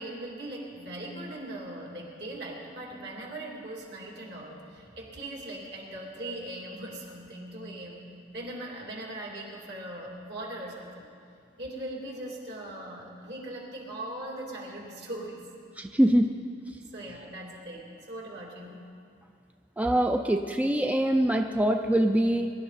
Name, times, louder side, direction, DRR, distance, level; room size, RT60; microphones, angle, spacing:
voice 1, 0.0-8.1 8.3-11.1 11.6-15.4 16.9-18.8, right 1 dB, 65° right, -2 dB, 2.9 m, -40 dB
voice 2, 15.8-16.3 19.8-22.5, right 1 dB, 10° right, 4 dB, 0.4 m, -24 dB
22.5 x 12.0 x 4.1 m, 2.3 s
head